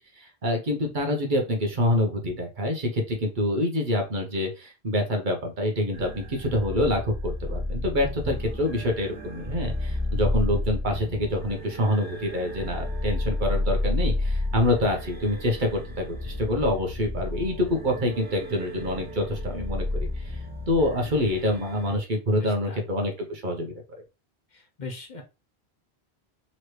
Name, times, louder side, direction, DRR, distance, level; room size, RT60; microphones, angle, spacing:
voice 1, 0.2-20.4 20.7-23.8, left 1 dB, 50° right, 2 dB, 1.1 m, -26 dB
sound 1, 5.9-21.9, left 2 dB, 10° right, 1.1 m, -31 dB
voice 2, 22.4-22.8 24.5-25.2, left 3 dB, 50° left, 3 dB, 0.8 m, -39 dB
4.1 x 3.1 x 3.1 m, 0.29 s
omnidirectional pair, 1.1 m